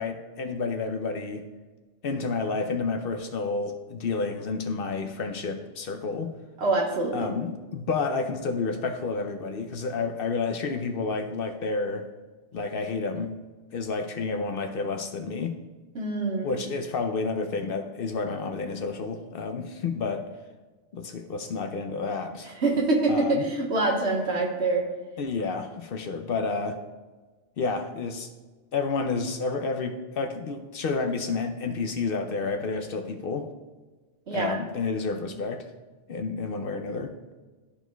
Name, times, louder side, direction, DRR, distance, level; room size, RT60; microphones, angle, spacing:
voice 1, 0.0-1.4 2.0-6.3 7.1-12.1 12.5-13.3 13.7-15.5 16.4-20.3 20.9-22.5 23.1-23.4 25.2-26.8 27.6-28.3 28.7-33.5 34.3-35.7 36.1-37.1, left 4 dB, 60° left, 6 dB, 0.7 m, -30 dB
voice 2, 6.6-7.3 16.0-16.5 22.6-24.9 34.3-34.6, right 2 dB, 70° right, -1 dB, 1.6 m, -25 dB
13.0 x 4.6 x 2.2 m, 1.3 s
omnidirectional pair, 1.2 m